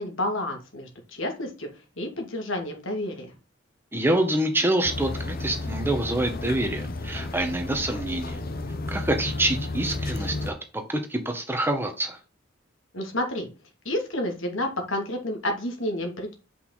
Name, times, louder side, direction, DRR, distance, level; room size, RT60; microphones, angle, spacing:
voice 1, 0.0-1.7 2.0-3.3 12.9-13.5 13.8-16.3, left 1 dB, 75° left, 3 dB, 2.6 m, -30 dB
voice 2, 3.9-8.4 8.9-12.2, right 1 dB, 10° right, 5 dB, 1.5 m, -26 dB
sound 1, 4.8-10.5, left 2 dB, 50° left, 0.9 m, -32 dB
6.3 x 5.6 x 4.0 m, 0.31 s
head